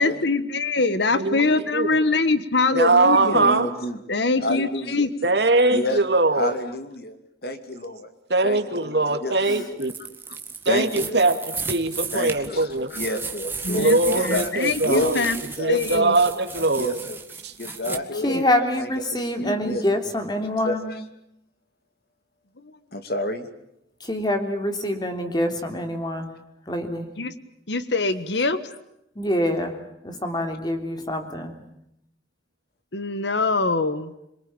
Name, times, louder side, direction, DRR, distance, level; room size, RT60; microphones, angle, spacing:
voice 1, 0.0-3.5 4.1-5.1 13.6-15.4 15.7-16.2 17.8-18.4 27.2-27.3 27.7-28.6 32.9-34.1, left 3 dB, 75° left, 13 dB, 1.5 m, -23 dB
voice 2, 1.1-1.9 2.7-3.7 5.2-6.5 8.3-9.9 10.6-12.9 13.7-15.2 15.6-17.0 17.4-17.5, right 2 dB, 70° right, 7 dB, 2.5 m, -21 dB
voice 3, 3.1-4.0 4.4-5.1 5.7-6.0 6.4-7.2 7.4-8.1 8.4-9.7 10.7-11.2 12.1-14.5 14.8-15.8 16.5-17.2 17.6-19.8 20.6-20.8 22.9-23.5, left 1 dB, 55° left, 8 dB, 2.7 m, -30 dB
sound 1, 9.8-18.0, right 5 dB, 10° right, 1.9 m, -34 dB
voice 4, 18.1-20.9 24.0-26.3 26.7-27.1 29.1-29.8 30.0-31.6, left 1 dB, 25° left, 5 dB, 3.4 m, -25 dB
26.5 x 23.5 x 8.9 m, 0.80 s
head